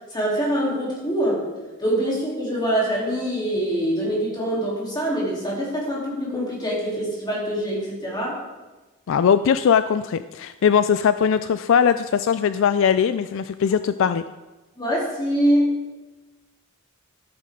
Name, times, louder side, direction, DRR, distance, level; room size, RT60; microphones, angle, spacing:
voice 1, 0.1-1.4 1.8-8.4 14.8-15.8, equal, 20° left, -5 dB, 3.4 m, -24 dB
voice 2, 9.1-14.2, left 7 dB, 65° left, 12 dB, 0.3 m, -20 dB
14.0 x 8.5 x 3.7 m, 1.2 s
head